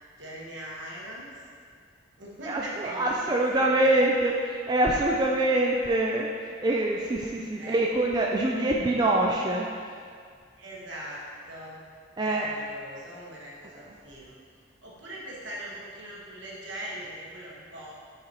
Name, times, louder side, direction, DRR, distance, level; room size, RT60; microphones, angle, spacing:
voice 1, 0.2-1.3 2.2-4.1 7.6-7.8 10.5-11.9 12.2-14.4 14.8-17.9, right 1 dB, 70° right, -5 dB, 1.4 m, -41 dB
voice 2, 2.5-9.7 12.2-12.5 13.8-14.0, right 1 dB, 20° right, -2 dB, 0.4 m, -25 dB
8.3 x 4.8 x 3.0 m, 2.1 s
head